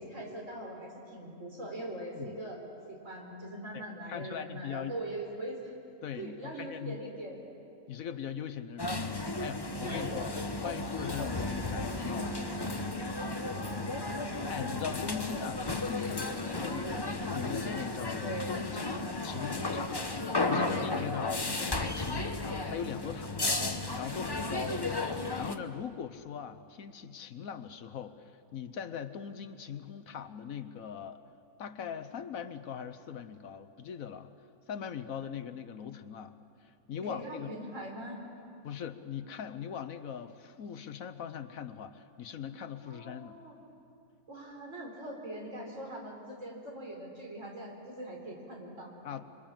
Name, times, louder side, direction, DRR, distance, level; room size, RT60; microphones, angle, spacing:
voice 1, 0.0-2.6 2.9-5.7 6.1-7.4 9.8-10.1 13.5-14.3 24.5-24.8 37.0-38.2 42.8-43.6 44.3-48.9, right 1 dB, 55° right, 0 dB, 4.5 m, -42 dB
voice 2, 4.1-4.9 6.0-7.0 7.9-10.3 10.6-12.9 14.5-20.0 20.5-23.5 24.0-24.8 25.4-28.2 28.5-31.2 31.6-34.3 34.7-36.3 36.6-37.5 38.6-43.4 49.0-49.2, left 8 dB, 70° left, 11 dB, 1.3 m, -40 dB
sound 1, 8.8-25.6, left 2 dB, 20° left, 0.9 m, -34 dB
26.0 x 24.0 x 7.4 m, 2.6 s
omnidirectional pair, 1.5 m